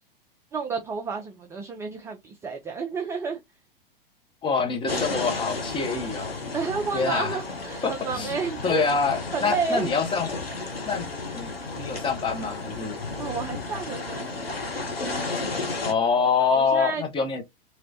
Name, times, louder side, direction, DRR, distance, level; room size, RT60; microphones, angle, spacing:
voice 1, 0.5-3.4 6.5-8.8 9.3-9.9 13.2-14.4 16.5-17.0, right 5 dB, 10° right, 0.3 m, -31 dB
voice 2, 4.4-6.4 6.9-7.4 7.8-8.3 8.6-10.3 10.9-13.0 15.8-17.4, left 5 dB, 15° left, 0.9 m, -26 dB
sound 1, 4.9-15.9, left 3 dB, 90° left, 1.0 m, -33 dB
3.0 x 3.0 x 2.6 m
figure-of-eight pair, 95°, 29 cm